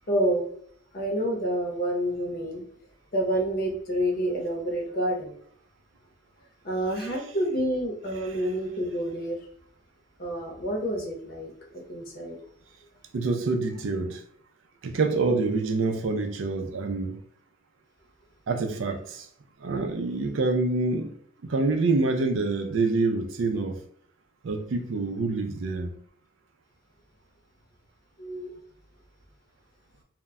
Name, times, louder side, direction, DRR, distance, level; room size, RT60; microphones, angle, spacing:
voice 1, 0.1-0.5 0.9-2.7 3.1-5.3 6.6-9.4 10.2-12.4 28.2-28.5, right 1 dB, 45° left, 0.6 m, -28 dB
voice 2, 13.1-14.2 14.8-17.2 18.5-19.3 19.6-21.1 21.4-23.8 24.4-26.0, right 3 dB, 70° right, 0.4 m, -26 dB
2.1 x 2.1 x 3.5 m
head